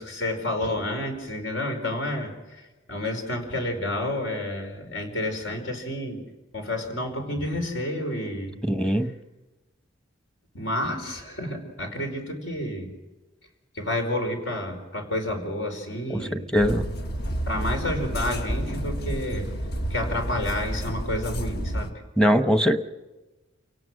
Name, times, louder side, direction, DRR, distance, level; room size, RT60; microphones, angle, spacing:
voice 1, 0.0-2.6 2.9-6.2 6.5-8.6 10.5-12.9 13.7-16.5 17.5-19.5 19.9-21.9, left 1 dB, 75° left, 4 dB, 5.0 m, -30 dB
voice 2, 8.7-9.1 16.1-16.8 22.2-22.8, equal, 5° left, 7 dB, 1.0 m, -21 dB
sound 1, 16.6-21.9, right 1 dB, 55° left, 1.5 m, -30 dB
29.0 x 18.0 x 6.4 m, 1.1 s
head